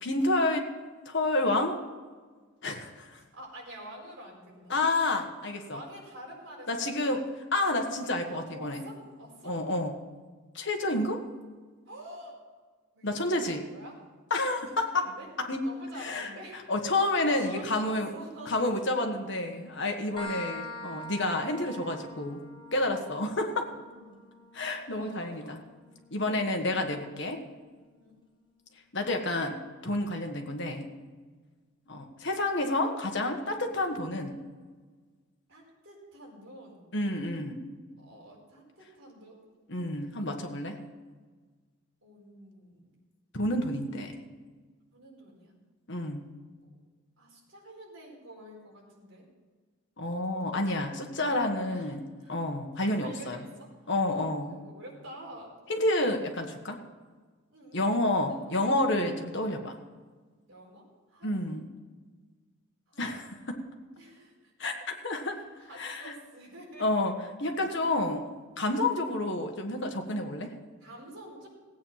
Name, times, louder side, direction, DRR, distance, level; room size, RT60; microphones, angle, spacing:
voice 1, 0.0-0.7 1.0-1.8 2.6-3.2 4.7-5.8 6.7-7.2 7.5-8.8 9.4-9.9 10.5-11.2 13.0-13.6 14.3-15.1 15.4-15.6 16.0-16.3 16.7-18.1 18.5-22.4 22.7-23.7 24.5-25.6 26.1-27.4 28.9-29.6 29.8-30.9 31.9-34.4 36.9-37.7 39.7-40.8 43.3-44.1 45.9-46.3 50.0-53.4 53.9-54.6 55.7-56.8 57.7-59.8 61.2-61.7 63.0-63.6 64.6-64.7 65.0-65.4 65.8-66.1 66.8-67.1 67.4-68.2 68.6-70.5, left 2 dB, 55° left, 3 dB, 1.5 m, -29 dB
voice 2, 3.3-4.8 5.7-7.1 8.3-9.6 11.9-12.4 12.9-14.0 14.6-15.3 15.6-16.6 17.3-18.6 22.9-24.4 25.0-25.6 28.0-28.1 35.5-36.8 38.0-39.4 42.0-43.0 43.7-44.0 44.9-45.5 47.2-49.2 50.0-50.5 51.5-51.9 52.2-52.3 52.9-53.7 54.4-55.5 57.5-58.5 60.5-61.3 62.9-63.1 64.0-64.5 65.3-66.9 70.8-71.5, right 1 dB, 60° right, -3 dB, 4.6 m, -48 dB
sound 1, 20.2-27.6, equal, 20° left, 1.2 m, -45 dB
16.5 x 8.8 x 5.8 m, 1.4 s
head